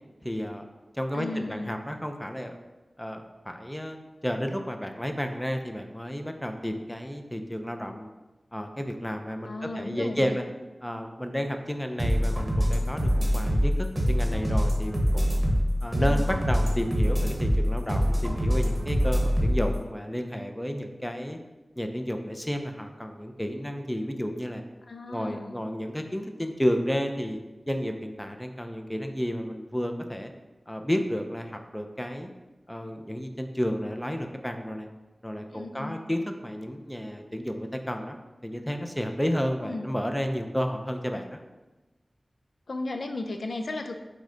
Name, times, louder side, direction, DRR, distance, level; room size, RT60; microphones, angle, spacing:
voice 1, 0.2-0.6 0.9-2.6 3.0-8.1 8.5-10.4 10.8-15.4 15.8-21.4 21.8-24.6 25.1-27.4 27.7-30.3 30.7-32.3 32.7-34.9 35.2-38.2 38.4-41.4, equal, 10° left, 5 dB, 0.4 m, -31 dB
voice 2, 1.1-1.7 9.5-10.4 16.0-16.3 24.8-25.6 35.5-36.0 39.6-39.9 42.7-44.0, left 2 dB, 85° left, 6 dB, 0.3 m, -35 dB
sound 1, 12.0-19.7, equal, 20° right, 0.9 m, -24 dB
6.1 x 2.1 x 3.8 m, 1.1 s
wide cardioid pair, 75°, 0 cm